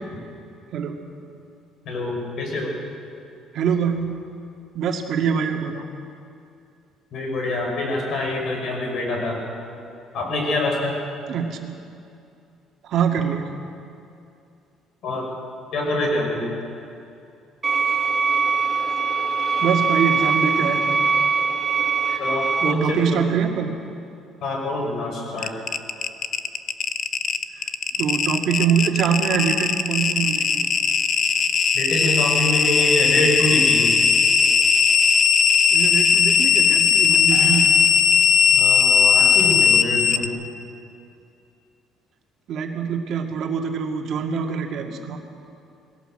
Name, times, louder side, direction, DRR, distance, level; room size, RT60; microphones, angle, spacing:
voice 1, 0.7-1.1 3.5-4.1 4.7-5.9 11.3-11.7 12.8-13.4 19.6-21.0 22.1-22.3 22.6-23.7 28.0-30.7 35.7-37.9 42.5-45.2, right 7 dB, 55° right, 3 dB, 2.1 m, -24 dB
voice 2, 1.8-2.8 7.1-9.4 10.1-11.0 15.0-15.3 15.7-16.5 22.2-23.2 24.4-25.6 31.7-33.9 37.3-37.5 38.5-40.3, left 1 dB, 55° left, 0 dB, 5.8 m, -25 dB
sound 1, 17.6-22.7, right 5 dB, 15° right, 1.4 m, -22 dB
sound 2, 25.4-40.3, left 6 dB, 40° left, 0.8 m, -18 dB
21.5 x 17.0 x 7.7 m, 2.6 s
cardioid pair, 160°, 0 cm